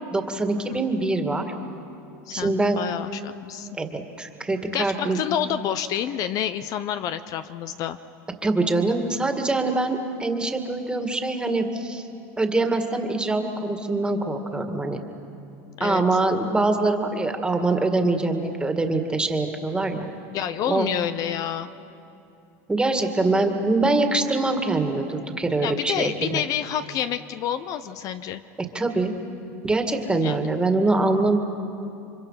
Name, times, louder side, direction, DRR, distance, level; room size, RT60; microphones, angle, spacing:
voice 1, 0.1-1.5 2.3-2.8 3.8-5.2 8.4-12.1 12.4-15.0 15.8-20.1 20.7-20.9 22.7-26.4 28.7-29.1 29.6-31.4, right 2 dB, 10° right, 5 dB, 2.1 m, -24 dB
voice 2, 2.3-3.7 4.7-8.0 15.8-16.2 20.3-21.7 25.6-28.4 30.0-30.4, left 10 dB, 50° left, 11 dB, 0.8 m, -28 dB
29.5 x 24.5 x 5.8 m, 2.7 s
supercardioid pair, 110°, 8 cm